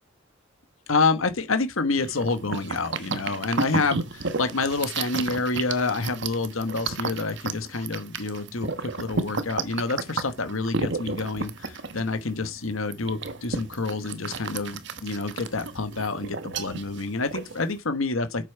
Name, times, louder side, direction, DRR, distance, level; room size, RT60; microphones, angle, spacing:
voice 1, 0.9-18.5, left 3 dB, 75° left, 1.3 m, -28 dB
sound 1, 2.0-17.8, right 4 dB, 60° right, 1.2 m, -33 dB
8.9 x 7.4 x 4.6 m
head